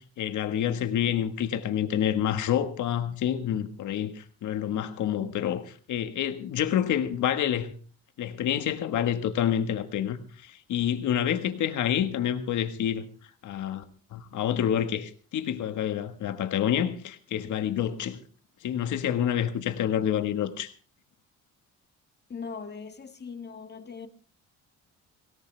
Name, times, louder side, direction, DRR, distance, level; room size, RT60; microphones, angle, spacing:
voice 1, 0.0-7.7 8.2-13.1 13.4-13.8 14.1-18.2 18.6-20.7, left 10 dB, 75° left, 1.6 m, -28 dB
voice 2, 22.3-24.1, left 5 dB, 35° left, 1.8 m, -40 dB
18.0 x 17.5 x 3.4 m
cardioid pair, 90°, 30 cm